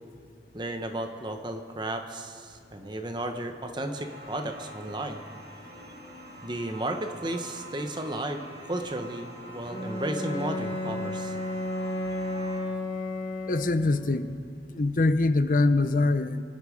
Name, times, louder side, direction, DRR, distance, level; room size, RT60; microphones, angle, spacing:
voice 1, 0.5-5.2 6.4-8.4 8.7-11.3, right 1 dB, 25° right, 5 dB, 1.0 m, -33 dB
sound 1, 3.9-12.6, equal, 65° right, 4.5 m, -45 dB
Bowed string instrument, 9.6-14.1, left 2 dB, 65° left, 3.5 m, -33 dB
voice 2, 13.5-14.3 14.7-16.4, left 2 dB, 50° left, 12 dB, 0.6 m, -23 dB
24.0 x 9.9 x 5.1 m, 2.4 s
head